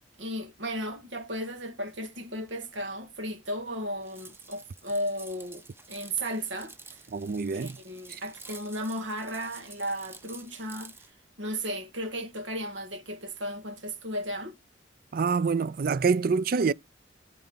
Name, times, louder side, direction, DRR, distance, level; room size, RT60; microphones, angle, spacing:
voice 1, 0.2-7.1 7.5-10.9 11.4-14.6, equal, 85° right, 2.1 m, -35 dB
sound 1, 4.0-11.1, right 3 dB, 15° right, 0.9 m, -50 dB
voice 2, 7.1-7.8 8.1-8.2 15.1-16.7, right 5 dB, 50° right, 0.4 m, -26 dB
13.0 x 4.6 x 3.9 m
head